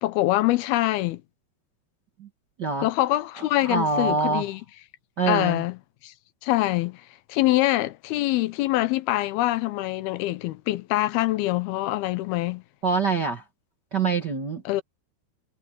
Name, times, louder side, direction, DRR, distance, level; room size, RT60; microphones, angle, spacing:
voice 1, 0.0-1.2 2.8-4.6 5.3-5.8 6.0-6.1 6.4-7.0 7.3-12.6 14.7-14.8, left 17 dB, 85° left, 2.8 m, -24 dB
voice 2, 3.6-4.4 5.2-5.6 12.8-13.4 13.9-14.6, right 4 dB, 60° right, 1.1 m, -24 dB
omnidirectional pair, 4.4 m